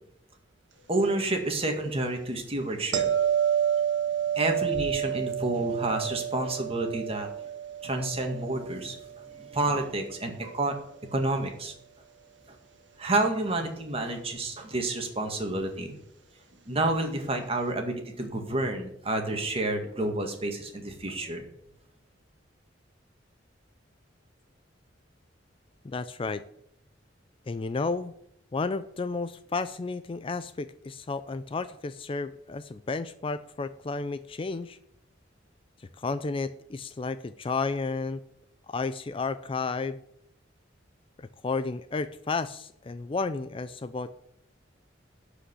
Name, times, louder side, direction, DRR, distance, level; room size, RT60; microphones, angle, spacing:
voice 1, 0.9-3.1 4.4-7.3 7.8-9.0 9.4-10.8 11.1-11.7 13.0-15.9 16.7-21.5, right 2 dB, 30° right, 4 dB, 1.9 m, -29 dB
sound 1, 2.9-9.9 15.2-15.4, right 9 dB, 75° right, 1.5 m, -30 dB
voice 2, 25.8-26.4 27.5-28.1 28.5-34.8 36.0-38.2 38.7-40.0 41.4-44.1, left 4 dB, 30° left, 13 dB, 0.4 m, -32 dB
11.5 x 5.1 x 8.3 m, 0.73 s
head